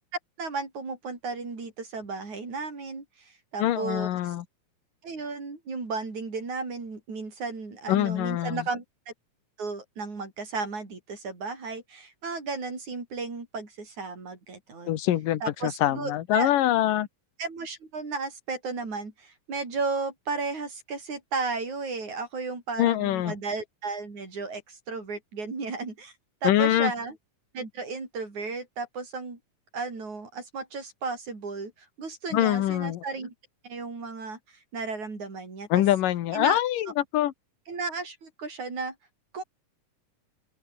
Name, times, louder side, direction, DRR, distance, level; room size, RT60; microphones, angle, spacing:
voice 1, 0.4-4.4 5.0-8.8 9.6-14.9 15.4-16.5 17.4-26.1 26.4-27.2 27.5-29.4 29.7-33.3 33.6-34.4 34.7-35.8 36.3-36.6 37.7-39.0 39.3-39.4, right 4 dB, 60° right, 7.5 m, -34 dB
voice 2, 3.6-4.4 7.9-8.6 14.9-17.1 22.8-23.3 26.4-26.9 32.3-33.0 35.7-37.3, left 13 dB, 85° left, 2.9 m, -24 dB
open air
omnidirectional pair, 3.7 m